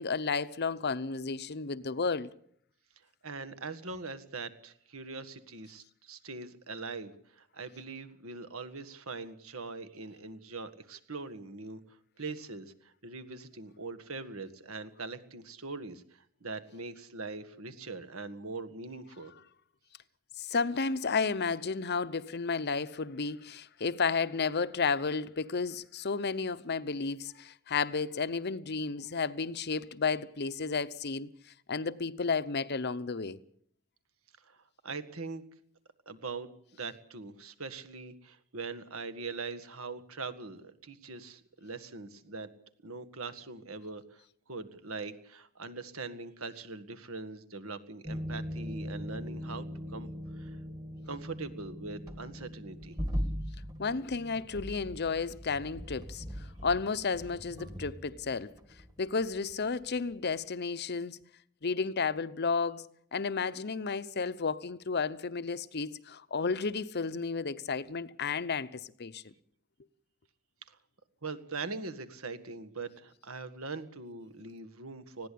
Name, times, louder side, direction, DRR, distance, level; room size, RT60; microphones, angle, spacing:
voice 1, 0.0-2.3 20.4-31.3 31.7-33.4 53.8-58.5 59.0-61.2 61.6-69.2, left 4 dB, 50° left, 0.8 m, -32 dB
voice 2, 3.2-11.8 12.2-19.3 34.4-34.6 34.8-35.4 36.1-42.5 42.8-44.2 44.5-49.7 49.9-50.1 50.4-50.6 51.1-53.0 70.7-70.8 71.2-75.3, right 3 dB, 70° right, 1.8 m, -42 dB
sound 1, 48.0-59.6 59.8-60.1, equal, 20° right, 2.0 m, -40 dB
20.0 x 16.0 x 8.6 m
head